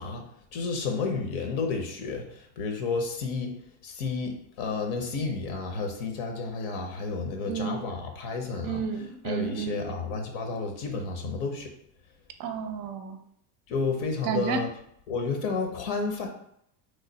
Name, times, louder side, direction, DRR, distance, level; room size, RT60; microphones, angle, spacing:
voice 1, 0.0-3.6 3.8-8.8 9.2-11.7 13.7-14.7 15.1-16.3, left 4 dB, 60° left, 4 dB, 0.8 m, -31 dB
voice 2, 7.5-7.9 8.6-9.9 12.4-13.2 14.2-14.7, right 6 dB, 45° right, 7 dB, 0.5 m, -31 dB
3.2 x 2.0 x 3.9 m, 0.73 s
supercardioid pair, 105°, 47 cm